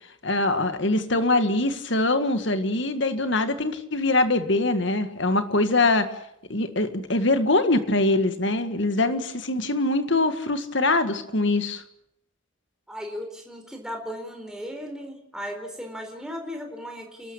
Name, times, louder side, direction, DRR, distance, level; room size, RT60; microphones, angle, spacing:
voice 1, 0.2-6.1 6.5-11.8, left 2 dB, 60° left, 9 dB, 1.9 m, -23 dB
voice 2, 12.9-17.3, equal, 5° right, 2 dB, 4.3 m, -36 dB
29.0 x 12.5 x 8.8 m, 0.75 s
head